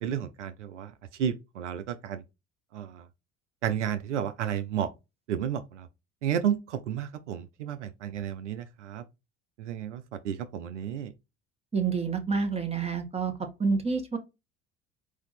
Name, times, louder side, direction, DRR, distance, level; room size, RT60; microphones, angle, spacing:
voice 1, 0.0-2.2 2.7-3.1 3.6-4.9 5.3-5.9 6.2-9.0 9.6-11.1, right 9 dB, 85° right, 0.5 m, -32 dB
voice 2, 11.7-13.3 13.6-14.2, right 5 dB, 15° right, 1.5 m, -28 dB
4.7 x 2.7 x 4.0 m
hypercardioid pair, 60°, 35 cm